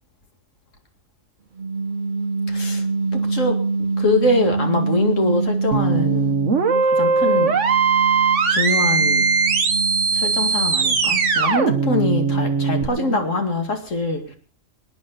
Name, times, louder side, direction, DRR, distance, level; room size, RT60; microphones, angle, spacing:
sound 1, 1.6-6.8 7.2-13.4, right 3 dB, 45° right, 0.9 m, -26 dB
voice 1, 2.5-2.9 3.1-3.6 4.0-6.4 6.8-7.5 8.5-9.3 10.1-14.4, left 2 dB, 75° left, 2.7 m, -23 dB
sound 2, 5.7-12.8, right 5 dB, 65° right, 1.7 m, -19 dB
25.5 x 9.7 x 4.1 m
omnidirectional pair, 1.3 m